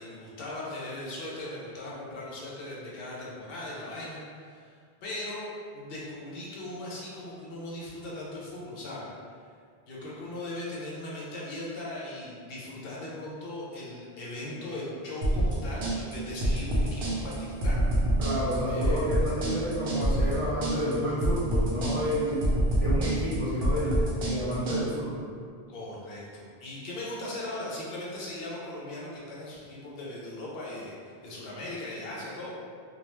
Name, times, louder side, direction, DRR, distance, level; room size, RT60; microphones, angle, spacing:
voice 1, 0.0-4.7 5.0-9.1 9.9-17.8 18.7-19.1 25.7-32.5, left 1 dB, 70° left, -5 dB, 0.8 m, -39 dB
sound 1, 15.2-24.8, right 1 dB, 70° right, 0.8 m, -27 dB
voice 2, 18.2-25.3, equal, 40° right, -10 dB, 0.6 m, -30 dB
2.3 x 2.1 x 3.0 m, 2.1 s
omnidirectional pair, 1.0 m